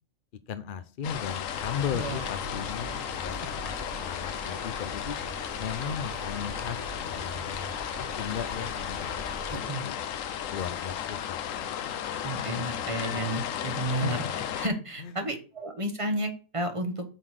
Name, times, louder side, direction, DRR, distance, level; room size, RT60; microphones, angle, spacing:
voice 1, 0.5-5.2 5.6-9.9 10.5-11.4 14.0-14.1 15.0-15.1, left 7 dB, 55° left, 11 dB, 0.6 m, -36 dB
sound 1, 1.0-14.7, left 9 dB, 70° left, 1.1 m, -34 dB
sound 2, 1.5-9.6, equal, 40° right, 3.0 m, -42 dB
voice 2, 1.9-2.3 9.5-9.8 12.2-14.2 14.6-17.0, right 1 dB, 25° right, 5 dB, 1.3 m, -32 dB
8.1 x 3.9 x 6.4 m, 0.37 s
omnidirectional pair, 1.4 m